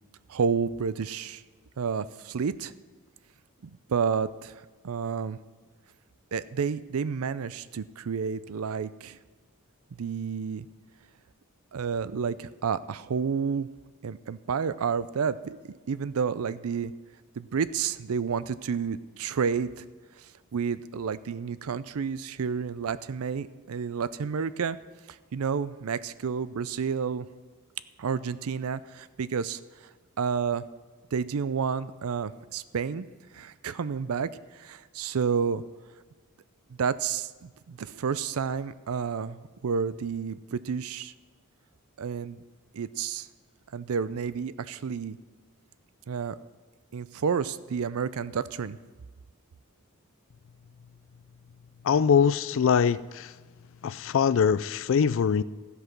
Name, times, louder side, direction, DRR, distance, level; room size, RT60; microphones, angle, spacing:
voice 1, 0.3-1.4 1.8-2.7 3.6-5.4 6.3-9.2 10.0-10.7 11.7-13.7 14.0-16.9 17.4-19.9 20.2-20.3 20.5-24.8 25.1-27.3 28.0-29.9 30.2-30.6 31.1-33.1 33.3-35.6 36.7-41.1 42.0-42.4 42.7-43.3 43.7-45.2 46.1-46.4 46.9-48.8, right 6 dB, 70° right, 16 dB, 0.5 m, -30 dB
voice 2, 51.8-53.3 53.8-55.4, left 7 dB, 60° left, 18 dB, 0.4 m, -23 dB
13.5 x 8.1 x 5.9 m, 1.4 s
head